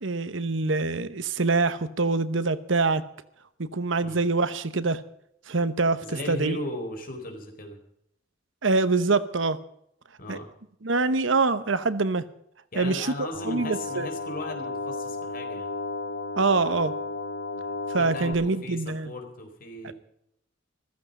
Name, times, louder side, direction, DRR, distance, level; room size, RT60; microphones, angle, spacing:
voice 1, 0.0-3.0 3.6-5.0 5.5-6.0 6.3-6.6 8.6-9.6 10.3-10.4 10.8-12.3 12.8-13.1 13.5-14.1 16.4-16.9 17.9-19.1 19.8-19.9, right 3 dB, 70° right, 14 dB, 1.0 m, -25 dB
voice 2, 6.0-7.8 10.2-10.5 12.7-15.8 18.0-19.9, left 1 dB, 45° left, 4 dB, 4.1 m, -37 dB
sound 1, 13.3-18.3, left 3 dB, 70° left, 1.7 m, -33 dB
15.0 x 14.5 x 5.4 m, 0.73 s
head